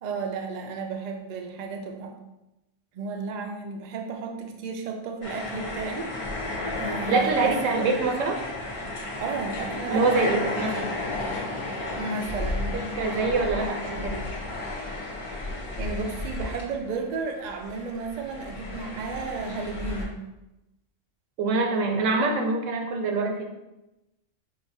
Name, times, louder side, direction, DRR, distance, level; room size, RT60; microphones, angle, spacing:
voice 1, 0.0-2.2 2.9-6.5 6.8-8.1 9.2-10.5 12.0-13.0 15.8-20.2, right 4 dB, 65° right, 3 dB, 0.4 m, -33 dB
sound 1, 5.2-17.1 17.4-20.1, left 2 dB, 55° left, 1.2 m, -33 dB
voice 2, 7.1-8.4 9.9-10.9 12.9-14.3 21.4-23.4, right 3 dB, 80° right, 2 dB, 1.0 m, -25 dB
5.6 x 2.4 x 2.6 m, 0.97 s
omnidirectional pair, 1.3 m